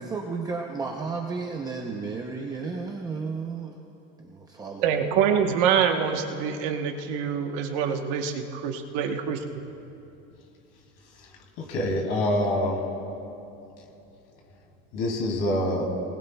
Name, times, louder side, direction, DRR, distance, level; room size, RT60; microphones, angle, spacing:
voice 1, 0.0-3.8 4.2-5.0, right 4 dB, 15° right, 0 dB, 0.6 m, -33 dB
voice 2, 4.8-9.6, right 7 dB, 60° right, 5 dB, 1.1 m, -25 dB
voice 3, 11.6-12.8 14.9-15.8, left 1 dB, 50° left, 1 dB, 2.6 m, -25 dB
28.5 x 20.0 x 2.3 m, 2.8 s
cardioid pair, 175°, 30 cm